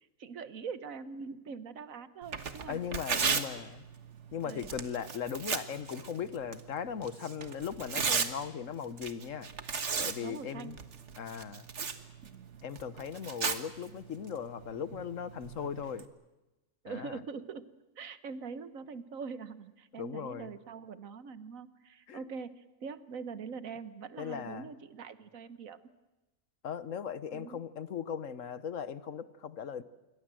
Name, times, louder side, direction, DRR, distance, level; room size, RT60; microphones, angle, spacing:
voice 1, 0.2-2.8 3.1-3.5 4.4-4.7 10.2-10.8 12.2-12.5 16.8-25.8 27.3-27.6, right 5 dB, 85° right, 13 dB, 1.6 m, -43 dB
Tearing, 2.2-16.1, right 5 dB, 60° right, 1.7 m, -37 dB
voice 2, 2.7-3.8 4.3-9.5 10.0-10.8 11.2-11.6 12.6-16.1 16.9-17.2 20.0-20.5 22.1-22.2 24.2-24.7 26.6-29.8, left 7 dB, 75° left, 15 dB, 1.4 m, -38 dB
27.0 x 23.0 x 7.6 m, 1.1 s
omnidirectional pair, 1.4 m